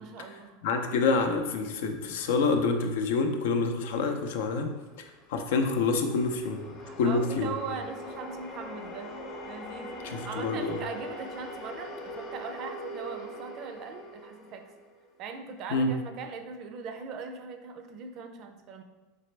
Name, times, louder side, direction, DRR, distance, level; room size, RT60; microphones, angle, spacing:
voice 1, 0.0-0.6 6.8-9.1 9.4-14.6 15.2-18.8, right 5 dB, 45° right, 6 dB, 0.4 m, -40 dB
voice 2, 0.6-4.7 5.0-7.5 10.1-10.8 15.7-15.9, left 4 dB, 75° left, 5 dB, 0.5 m, -27 dB
sound 1, 4.8-15.2, equal, 45° left, 0.8 m, -42 dB
4.0 x 3.3 x 3.2 m, 1.2 s
supercardioid pair, 125°, 0 cm